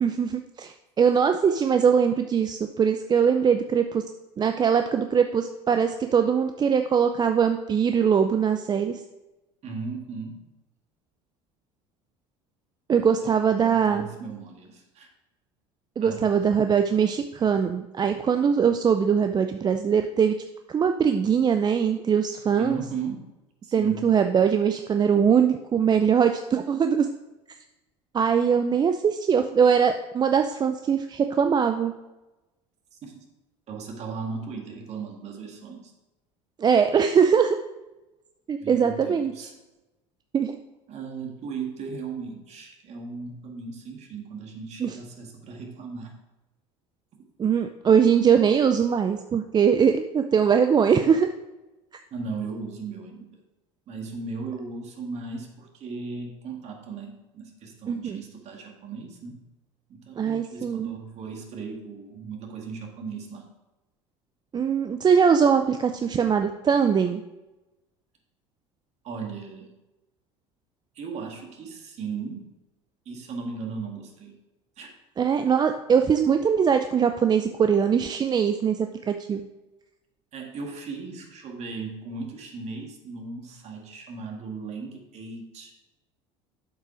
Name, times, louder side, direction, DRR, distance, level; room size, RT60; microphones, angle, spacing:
voice 1, 0.0-4.0 4.4-9.0 12.9-14.1 16.0-20.3 20.7-22.8 23.7-27.1 28.1-31.9 36.6-37.6 38.5-39.3 40.3-40.6 44.8-45.0 47.4-51.3 57.9-58.2 60.2-60.9 64.5-67.2 75.2-79.4, right 7 dB, 30° right, 7 dB, 0.5 m, -22 dB
voice 2, 9.6-10.4 13.1-15.1 16.0-16.3 22.6-23.2 23.6-24.1 33.0-33.2 33.7-35.9 38.6-39.5 40.9-46.1 52.1-53.4 53.9-59.4 59.9-63.5 69.0-69.7 71.0-72.5 73.1-74.3 74.8-74.9 80.3-85.7, right 4 dB, 50° right, 2 dB, 1.9 m, -37 dB
7.7 x 5.4 x 5.0 m, 1.0 s
hypercardioid pair, 85°, 15 cm